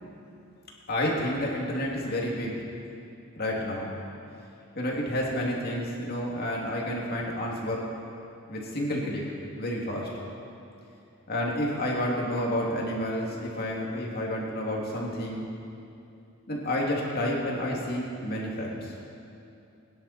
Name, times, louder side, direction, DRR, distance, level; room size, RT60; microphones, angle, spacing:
voice 1, 0.9-2.5 3.3-3.9 4.8-7.9 8.5-9.2 9.6-10.1 11.3-15.4 16.5-18.9, left 1 dB, 45° left, -3 dB, 2.5 m, -30 dB
22.5 x 10.5 x 4.3 m, 2.6 s
head